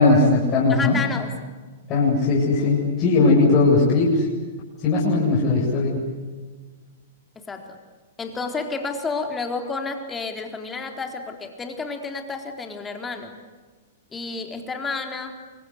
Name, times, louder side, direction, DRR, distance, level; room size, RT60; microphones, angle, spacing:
voice 1, 0.0-1.0 1.9-4.3 4.8-6.0, left 3 dB, 30° left, -5 dB, 7.9 m, -18 dB
voice 2, 0.7-1.3 7.4-7.8 8.2-13.3 14.1-15.4, left 4 dB, 15° left, 4 dB, 4.2 m, -30 dB
28.0 x 24.5 x 8.3 m, 1.4 s
figure-of-eight pair, 105°, 0 cm